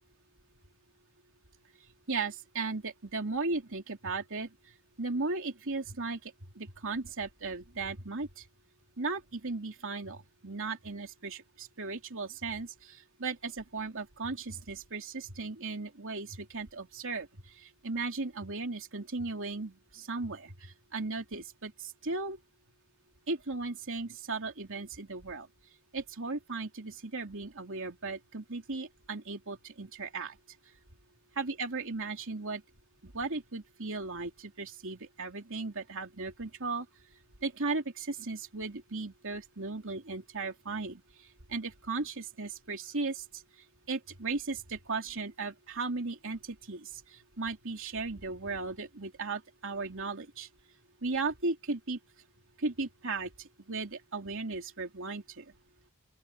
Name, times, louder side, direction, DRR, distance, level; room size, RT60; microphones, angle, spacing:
voice 1, 2.1-4.5 5.0-8.4 9.0-22.4 23.3-25.5 25.9-30.4 31.4-32.6 33.0-36.9 37.4-41.0 41.5-43.4 43.9-50.5 51.0-52.0 52.6-55.4, right 3 dB, 60° right, 3.0 m, -36 dB
open air
head